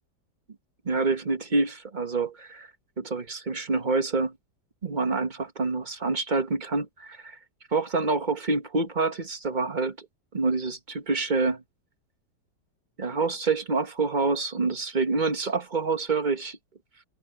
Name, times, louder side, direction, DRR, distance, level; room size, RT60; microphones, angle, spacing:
voice 1, 0.8-2.7 3.0-4.3 4.8-7.4 7.7-10.1 10.3-11.6 13.0-16.6, right 3 dB, 30° right, 1.2 m, -27 dB
omnidirectional pair, 1.9 m